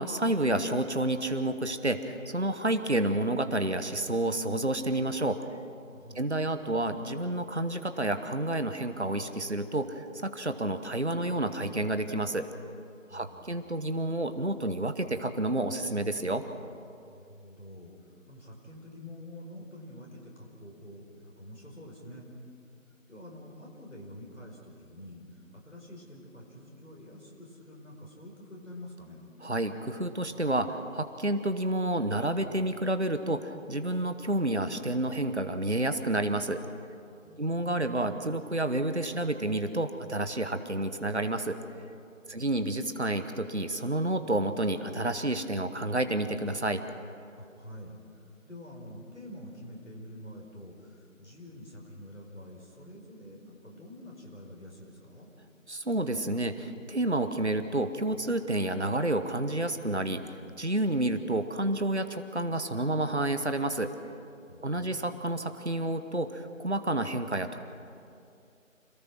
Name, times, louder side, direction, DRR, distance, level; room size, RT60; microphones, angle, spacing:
voice 1, 0.0-5.4 6.1-12.5 13.1-16.4 29.4-36.6 37.4-41.6 42.3-46.8 55.7-63.9 64.6-67.6, right 1 dB, 55° right, 9 dB, 1.2 m, -30 dB
voice 2, 13.1-13.7 17.1-22.3 23.1-29.2 37.2-37.9 42.3-42.7 47.4-55.3 64.5-65.1, left 1 dB, 70° left, -2 dB, 5.2 m, -47 dB
26.5 x 19.0 x 6.2 m, 2.5 s
figure-of-eight pair, 180°, 40 cm